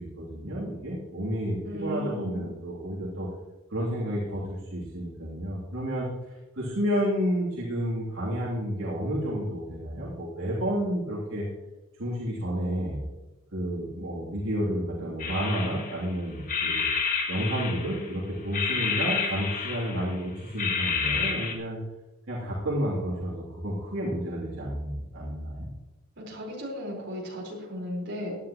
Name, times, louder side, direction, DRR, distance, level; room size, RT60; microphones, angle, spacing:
voice 1, 0.0-3.3 3.7-11.5 12.0-13.0 13.5-16.8 17.3-21.8 22.3-25.7, equal, 80° right, -6 dB, 3.1 m, -31 dB
voice 2, 1.6-2.5 26.2-28.4, equal, 55° right, -2 dB, 4.6 m, -35 dB
sound 1, 15.2-16.1 16.5-18.1 18.5-20.2 20.6-21.5, left 5 dB, 40° left, 1.5 m, -29 dB
17.0 x 11.0 x 3.1 m, 1.1 s
head